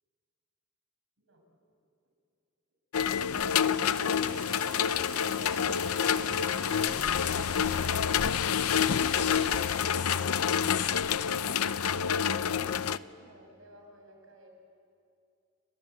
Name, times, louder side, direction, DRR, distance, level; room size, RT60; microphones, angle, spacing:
voice 1, 1.2-1.6 12.1-14.5, right 2 dB, 65° right, 2 dB, 6.4 m, -56 dB
sound 1, 2.9-13.0, left 8 dB, 90° left, 0.6 m, -28 dB
sound 2, 3.4-10.8, right 7 dB, 40° right, 1.8 m, -49 dB
sound 3, 4.6-7.3 8.2-9.6 9.9-11.7, left 11 dB, 55° left, 1.7 m, -42 dB
30.0 x 22.0 x 8.2 m, 2.5 s
head